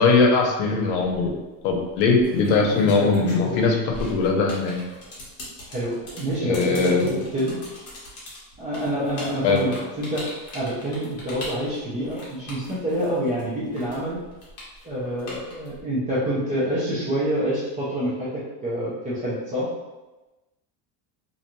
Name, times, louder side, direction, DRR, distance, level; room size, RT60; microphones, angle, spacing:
voice 1, 0.0-1.3 1.6-4.8 6.4-7.2 9.4-9.7, left 4 dB, 80° left, 2 dB, 0.7 m, -20 dB
sound 1, 0.9-1.3 2.0-13.4 13.7-15.8, left 2 dB, 35° left, 0.9 m, -36 dB
voice 2, 5.7-7.6 8.6-10.3 10.5-14.2 14.8-19.7, equal, 20° right, -9 dB, 0.3 m, -27 dB
2.5 x 2.2 x 2.9 m, 1.1 s
cardioid pair, 165°, 46 cm